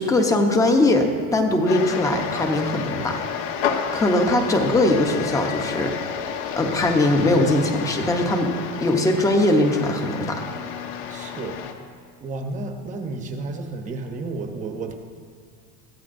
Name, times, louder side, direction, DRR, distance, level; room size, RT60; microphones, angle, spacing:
voice 1, 0.0-3.2 3.9-6.0 6.6-8.5 8.8-10.5, left 1 dB, 10° left, 4 dB, 0.7 m, -20 dB
sound 1, 1.7-11.7, left 7 dB, 70° left, 1.3 m, -30 dB
voice 2, 11.1-11.6 12.2-14.9, right 3 dB, 20° right, 4 dB, 0.8 m, -32 dB
22.0 x 15.0 x 2.6 m, 2.1 s
cardioid pair, 180°, 38 cm